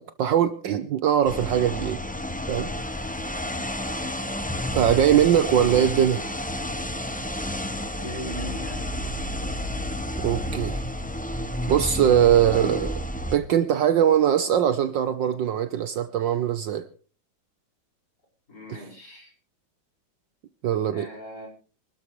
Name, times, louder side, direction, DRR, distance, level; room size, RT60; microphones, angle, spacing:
voice 1, 0.0-2.0 2.5-2.7 4.7-6.3 10.2-10.8 11.7-13.0 13.3-16.9 20.6-21.1, right 10 dB, 65° right, 12 dB, 1.4 m, -21 dB
sound 1, 1.2-13.4, left 1 dB, 10° left, 0.5 m, -30 dB
voice 2, 4.8-5.4 8.0-8.9 18.5-19.3 20.9-21.5, equal, 50° left, -1 dB, 5.7 m, -39 dB
25.5 x 13.0 x 3.2 m, 0.37 s
omnidirectional pair, 2.3 m